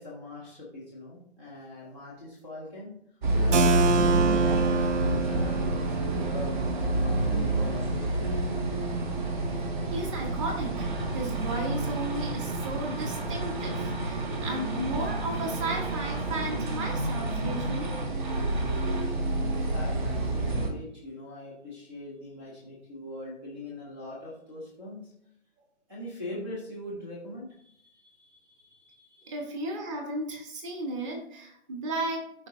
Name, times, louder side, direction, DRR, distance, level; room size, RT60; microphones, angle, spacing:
voice 1, 0.0-2.9 3.4-6.5 7.0-8.1 19.1-25.1 25.9-29.4, left 2 dB, 5° right, -6 dB, 0.4 m, -42 dB
sound 1, 3.2-20.7, right 2 dB, 40° right, 1.3 m, -29 dB
Keyboard (musical), 3.5-9.1, right 3 dB, 80° right, 0.6 m, -29 dB
voice 2, 9.9-10.9 11.1-17.9 29.3-32.5, right 1 dB, 25° right, 3 dB, 1.3 m, -34 dB
13.0 x 4.6 x 2.7 m, 0.69 s
figure-of-eight pair, 140°, 36 cm